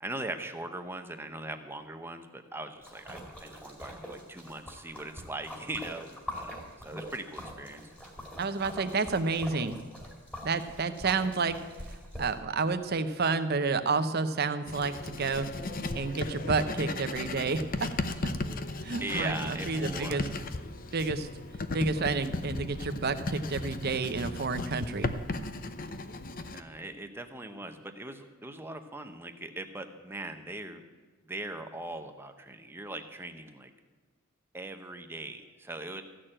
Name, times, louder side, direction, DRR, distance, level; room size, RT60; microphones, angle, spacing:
voice 1, 0.0-7.8 19.0-20.4 26.5-30.8 31.2-33.7 34.5-36.0, right 2 dB, 10° right, 7 dB, 0.8 m, -40 dB
Splash splatter, 2.8-12.4, equal, 5° left, 2.3 m, -44 dB
voice 2, 8.4-9.8 10.4-11.6 12.2-15.5 15.9-17.9 18.2-18.3 18.8-20.2 20.9-21.3 21.7-25.1, right 4 dB, 50° right, 10 dB, 0.8 m, -30 dB
Writing, 14.7-26.6, left 2 dB, 40° left, 0.7 m, -36 dB
15.0 x 6.7 x 8.8 m, 1.4 s
head